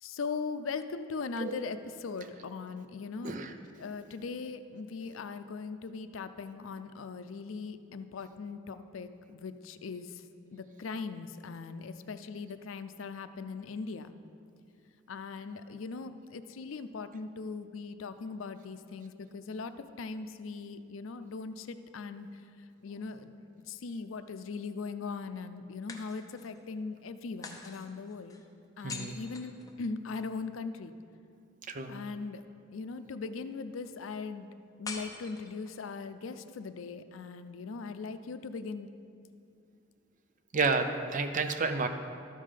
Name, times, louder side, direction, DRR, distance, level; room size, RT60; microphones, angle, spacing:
voice 1, 0.0-3.4 3.8-10.2 10.5-14.1 15.1-22.4 22.8-23.3 23.7-28.4 28.8-30.9 31.9-32.4 32.7-34.5 34.8-38.9, left 4 dB, 85° left, 11 dB, 0.5 m, -40 dB
sound 1, 22.8-23.8 25.9-26.6 27.4-30.3 34.8-35.9, left 4 dB, 20° left, 0.6 m, -46 dB
voice 2, 28.8-29.2 31.7-31.9 40.5-41.9, right 4 dB, 40° right, 7 dB, 0.6 m, -30 dB
12.5 x 5.6 x 5.0 m, 2.4 s
head